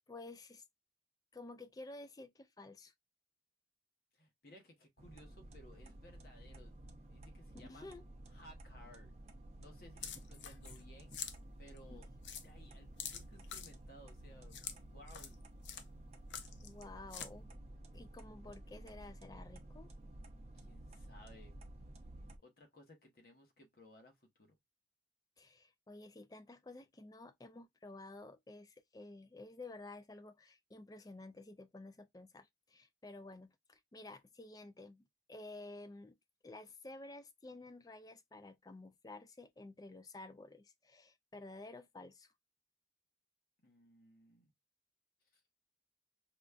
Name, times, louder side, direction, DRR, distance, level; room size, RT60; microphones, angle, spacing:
voice 1, 0.1-0.6 1.3-2.9 7.7-8.1 11.9-12.0 16.6-17.6 17.9-19.9 25.4-36.2 36.4-42.3, left 2 dB, 20° left, 0.3 m, -52 dB
voice 2, 4.1-6.8 7.1-7.9 8.3-9.1 9.6-11.2 11.6-12.1 12.4-14.6 14.9-15.4 20.5-21.6 22.4-24.6 43.6-44.5 45.3-45.4, left 1 dB, 55° left, 1.0 m, -60 dB
sound 1, 5.0-22.4, right 1 dB, 35° right, 0.5 m, -53 dB
sound 2, 10.0-10.8 11.1-11.4 11.8-11.9 12.2-12.4 13.0-13.7 14.5-14.8 15.1-15.3 15.6-15.8 16.3-16.8 17.1-17.3, left 8 dB, 85° left, 0.6 m, -45 dB
5.0 x 2.2 x 2.3 m
head